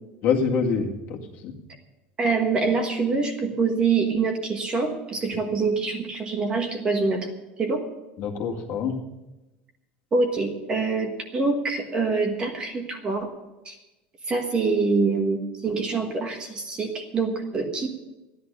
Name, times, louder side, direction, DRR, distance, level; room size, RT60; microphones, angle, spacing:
voice 1, 0.2-1.5 8.2-9.0, left 6 dB, 40° left, 1 dB, 2.0 m, -25 dB
voice 2, 2.2-7.3 7.6-7.8 10.1-13.3 13.6-13.7 14.3-17.9, right 4 dB, 20° right, 4 dB, 1.4 m, -25 dB
14.5 x 11.0 x 6.8 m, 1.0 s
cardioid pair, 175°, 5 cm